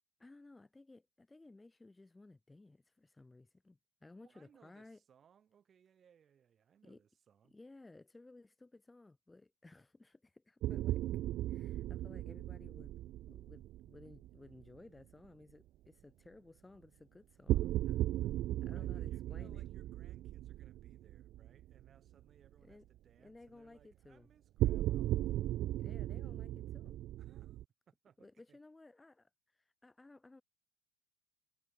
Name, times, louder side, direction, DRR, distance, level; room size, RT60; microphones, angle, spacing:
voice 1, 0.2-5.0 6.8-7.0 7.5-11.0 11.5-12.9 13.2-18.0 18.6-19.7 22.6-22.8 23.2-24.3 25.7-27.0 28.2-30.4, left 2 dB, 10° left, 1.9 m, -58 dB
voice 2, 4.2-7.6 18.7-25.2 27.2-27.6 27.9-28.6, right 8 dB, 35° right, 4.7 m, -67 dB
sound 1, 10.6-14.8 17.5-21.9 22.2-22.3 24.6-27.6, right 14 dB, 55° right, 0.3 m, -37 dB
supercardioid pair, 100°, 0 cm